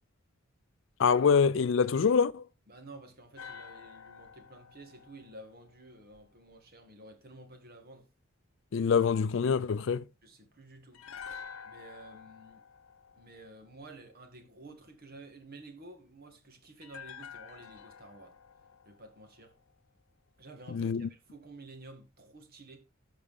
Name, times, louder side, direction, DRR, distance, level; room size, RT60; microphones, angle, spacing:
voice 1, 1.0-2.4 8.7-10.0 20.7-21.1, left 6 dB, 60° left, 0.4 m, -25 dB
voice 2, 2.7-8.1 10.2-11.1 11.6-12.6 13.2-18.4 18.9-19.5 20.4-22.8, right 2 dB, 45° right, 2.0 m, -51 dB
sound 1, 3.4-6.5 10.9-14.2 16.8-20.0 20.3-20.4, left 6 dB, 85° left, 0.8 m, -49 dB
14.0 x 5.0 x 3.6 m
head